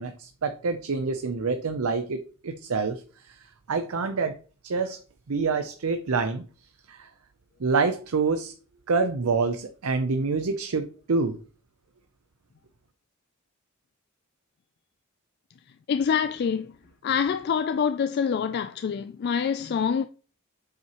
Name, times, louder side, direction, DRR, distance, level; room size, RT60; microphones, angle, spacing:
voice 1, 0.0-4.4 4.6-5.0 5.3-6.4 6.9-7.1 7.6-8.5 8.9-11.4, right 4 dB, 85° right, 0.6 m, -27 dB
voice 2, 15.9-16.8 17.0-20.1, left 7 dB, 50° left, 0.3 m, -26 dB
7.8 x 5.7 x 3.0 m
head